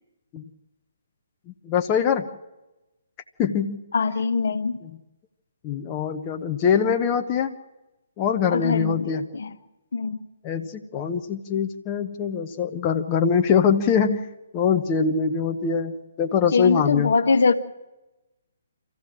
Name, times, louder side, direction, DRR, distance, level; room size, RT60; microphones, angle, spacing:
voice 1, 1.7-2.3 3.4-3.8 5.6-7.5 8.2-9.3 10.4-14.3 14.5-17.1, left 7 dB, 25° left, 4 dB, 1.1 m, -23 dB
voice 2, 3.9-4.8 8.5-9.6 9.9-10.2 16.5-17.5, left 4 dB, 60° left, 7 dB, 1.5 m, -23 dB
26.0 x 15.5 x 7.5 m, 1.0 s
figure-of-eight pair, 135°, 0 cm